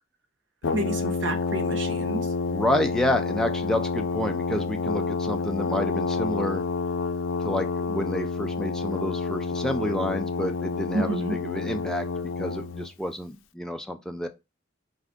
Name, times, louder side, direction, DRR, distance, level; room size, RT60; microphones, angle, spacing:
Brass instrument, 0.6-12.9, left 4 dB, 90° left, 0.4 m, -29 dB
voice 1, 0.7-2.3 10.9-11.4, right 2 dB, 70° right, 0.9 m, -30 dB
voice 2, 2.5-6.6 7.4-12.0 12.4-14.3, left 1 dB, 5° left, 0.4 m, -29 dB
4.4 x 2.5 x 3.5 m
head